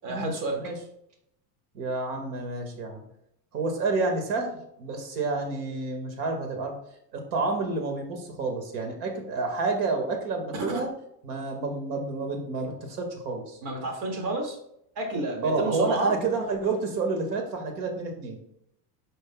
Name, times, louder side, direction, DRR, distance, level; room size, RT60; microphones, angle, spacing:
voice 1, 0.0-0.6 10.5-10.8 13.6-14.6 15.0-16.1, right 2 dB, 70° right, 1 dB, 2.5 m, -30 dB
voice 2, 1.7-3.0 3.5-6.8 7.1-10.9 11.2-13.6 15.4-18.4, right 3 dB, 85° right, 3 dB, 2.1 m, -29 dB
9.9 x 5.4 x 2.3 m, 0.75 s
cardioid pair, 165°, 48 cm